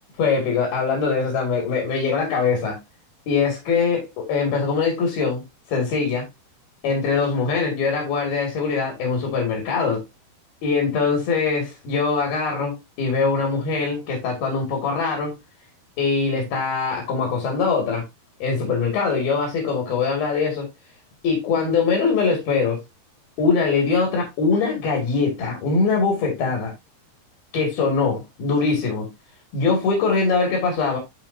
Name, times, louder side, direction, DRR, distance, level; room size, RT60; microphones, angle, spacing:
voice 1, 0.2-2.8 3.3-5.4 5.7-6.2 6.8-10.0 10.6-15.4 16.0-18.0 18.4-20.7 21.2-22.8 23.4-26.7 27.5-29.1 29.5-31.0, left 4 dB, 70° left, 4.3 m, -22 dB
12.5 x 4.7 x 2.7 m
omnidirectional pair, 4.5 m